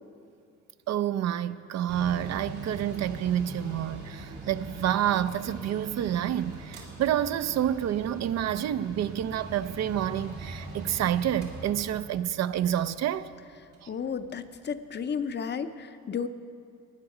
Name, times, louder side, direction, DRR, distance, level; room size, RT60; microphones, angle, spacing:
voice 1, 0.9-13.3 13.8-13.9, right 11 dB, 60° right, 0.4 m, -28 dB
Mechanical fan, 1.9-15.2, right 2 dB, 80° right, 2.4 m, -42 dB
voice 2, 13.9-16.3, left 6 dB, 35° left, 0.5 m, -33 dB
15.0 x 9.4 x 4.8 m
cardioid pair, 90°, 30 cm